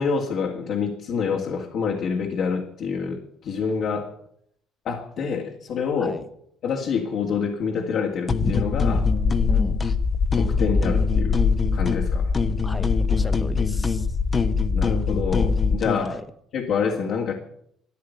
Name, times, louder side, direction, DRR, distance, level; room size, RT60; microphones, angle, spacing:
voice 1, 0.0-4.1 4.8-6.2 6.6-9.1 10.4-11.4 11.7-12.3 14.7-16.2 16.5-17.3, left 6 dB, 65° left, 0 dB, 2.3 m, -27 dB
sound 1, 8.3-10.0 10.3-12.1 12.3-16.1, left 4 dB, 30° left, 1.2 m, -27 dB
sound 2, 8.7-15.8, left 4 dB, 45° left, 2.1 m, -23 dB
voice 2, 9.5-9.8 12.6-14.2 15.9-16.2, left 2 dB, 15° left, 11 dB, 1.4 m, -36 dB
14.0 x 9.6 x 9.6 m, 0.69 s
cardioid pair, 100°, 0 cm